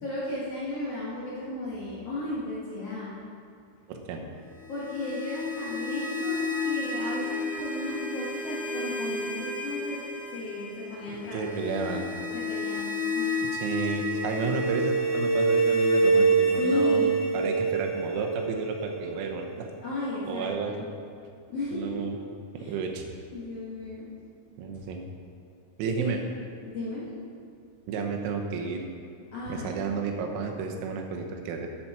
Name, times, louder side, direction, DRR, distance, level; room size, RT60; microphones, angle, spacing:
voice 1, 0.0-3.1 4.7-10.0 10.3-11.6 12.3-13.4 16.6-17.3 19.8-20.8 21.5-21.9 22.6-22.8 23.3-24.1 26.0-26.1 26.6-27.0 29.3-29.7, left 1 dB, 80° left, -8 dB, 1.3 m, -34 dB
voice 2, 3.9-4.2 11.3-12.1 13.5-19.7 20.3-20.8 21.7-22.2 22.5-23.0 24.6-25.0 25.8-26.2 27.9-28.8 29.5-31.7, right 5 dB, 90° right, 2 dB, 3.9 m, -32 dB
sound 1, 4.6-19.5, right 2 dB, 50° left, 1.3 m, -28 dB
12.5 x 8.8 x 4.4 m, 2.4 s
omnidirectional pair, 6.0 m